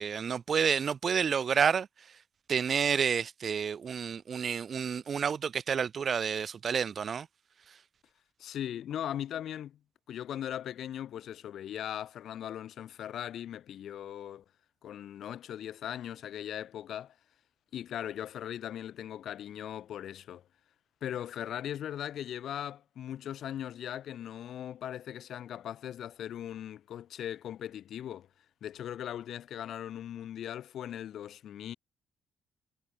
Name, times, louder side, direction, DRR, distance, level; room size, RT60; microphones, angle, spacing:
voice 1, 0.0-1.9 2.5-7.3, right 7 dB, 50° right, 2.1 m, -29 dB
voice 2, 8.4-9.8 10.1-14.4 14.8-17.2 17.7-20.5 21.0-28.3 28.6-31.8, left 10 dB, 70° left, 2.0 m, -39 dB
cardioid pair, 90°, 0 cm